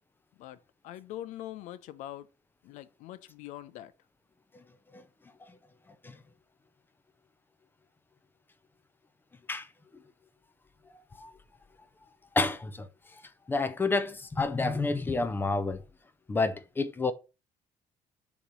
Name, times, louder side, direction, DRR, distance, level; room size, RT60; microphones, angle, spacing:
voice 1, 0.4-2.3 2.6-3.9, left 13 dB, 85° left, 0.6 m, -43 dB
voice 2, 12.3-13.2 13.5-15.8 16.3-17.1, left 3 dB, 15° left, 0.6 m, -29 dB
7.1 x 3.1 x 5.2 m
cardioid pair, 140°, 12 cm